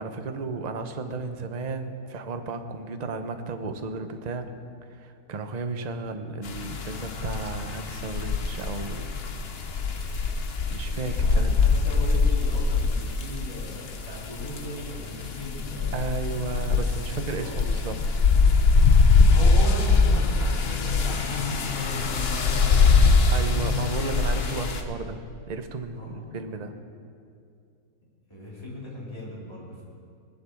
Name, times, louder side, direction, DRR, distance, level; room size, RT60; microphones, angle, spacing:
voice 1, 0.0-4.5 4.9-9.1 10.7-11.5 15.9-18.0 23.3-25.2 25.5-26.7, right 4 dB, 35° right, 7 dB, 0.8 m, -33 dB
sound 1, 6.4-24.8, left 4 dB, 45° left, 1.1 m, -23 dB
voice 2, 11.2-15.9 17.3-17.5 19.3-23.2 26.0-26.4 28.3-29.8, left 1 dB, 15° left, -6 dB, 4.0 m, -37 dB
20.0 x 7.9 x 7.1 m, 2.3 s
omnidirectional pair, 1.6 m